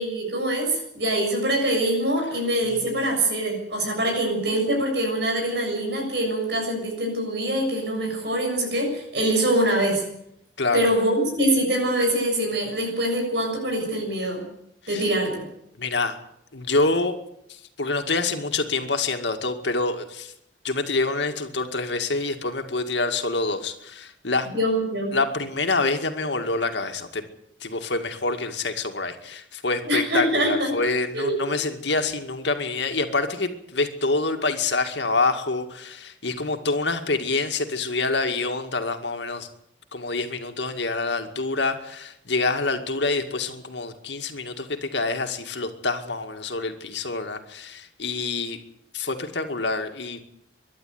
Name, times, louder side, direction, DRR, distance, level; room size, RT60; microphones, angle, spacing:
voice 1, 0.0-10.0 10.7-14.4 14.9-15.4 24.5-25.2 29.8-30.8 31.1-31.3, right 1 dB, 65° right, 1 dB, 7.1 m, -24 dB
voice 2, 15.8-16.2 16.5-17.2 17.5-20.3 20.6-24.5 25.1-27.2 27.6-39.5 39.9-48.6 48.9-50.2, left 3 dB, 70° left, 6 dB, 2.2 m, -26 dB
23.5 x 11.5 x 9.5 m, 0.77 s
head